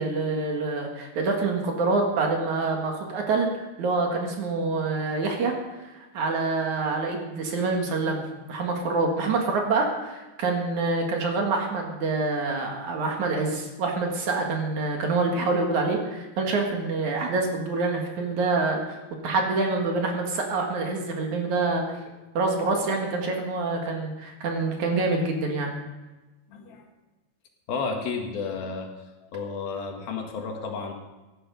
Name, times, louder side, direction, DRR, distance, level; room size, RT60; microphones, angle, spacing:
voice 1, 0.0-3.5 3.8-8.2 8.5-19.0 19.2-22.0 22.3-25.8, right 3 dB, 60° right, 2 dB, 2.9 m, -26 dB
voice 2, 26.5-26.8 27.7-28.9 29.2-30.9, left 5 dB, 80° left, 2 dB, 3.7 m, -32 dB
16.5 x 11.5 x 5.3 m, 1.1 s
omnidirectional pair, 4.3 m